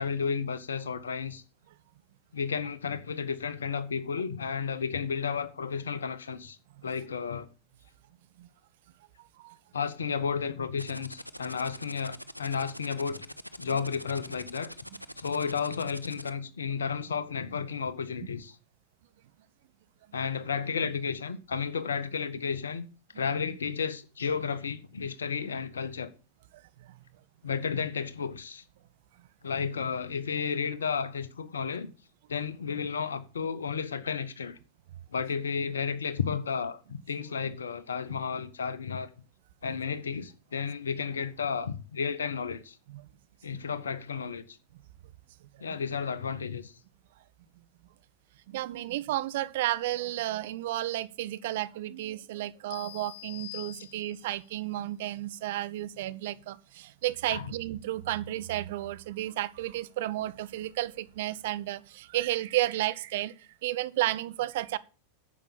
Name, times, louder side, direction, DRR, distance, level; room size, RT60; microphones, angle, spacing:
voice 1, 0.0-1.4 2.3-6.6 6.8-7.5 9.7-13.2 13.6-14.7 15.1-18.6 20.1-22.9 23.1-26.1 27.4-28.6 29.4-31.9 32.3-34.6 35.1-39.1 39.6-42.8 43.4-44.6 45.6-46.7 57.3-57.5, left 6 dB, 70° left, 1.3 m, -32 dB
sound 1, 10.8-16.3, equal, 90° left, 0.7 m, -43 dB
voice 2, 48.5-63.3 63.6-64.8, right 15 dB, 55° right, 0.8 m, -32 dB
sound 2, 52.7-54.4, left 17 dB, 50° left, 0.8 m, -45 dB
10.5 x 7.5 x 7.0 m
figure-of-eight pair, 90°, 0 cm